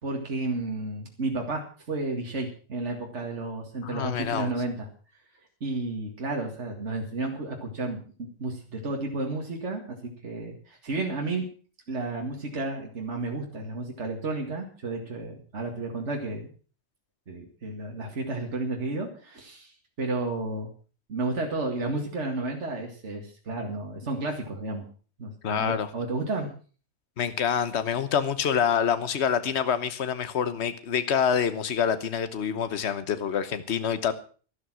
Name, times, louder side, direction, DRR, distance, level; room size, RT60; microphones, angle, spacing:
voice 1, 0.0-4.9 5.6-11.5 11.9-16.5 17.3-20.7 21.1-24.8 25.2-26.5, right 2 dB, 70° right, 2.5 m, -32 dB
voice 2, 3.8-4.5 25.4-25.9 27.2-34.1, left 7 dB, 65° left, 1.3 m, -26 dB
12.5 x 12.5 x 6.2 m
omnidirectional pair, 1.3 m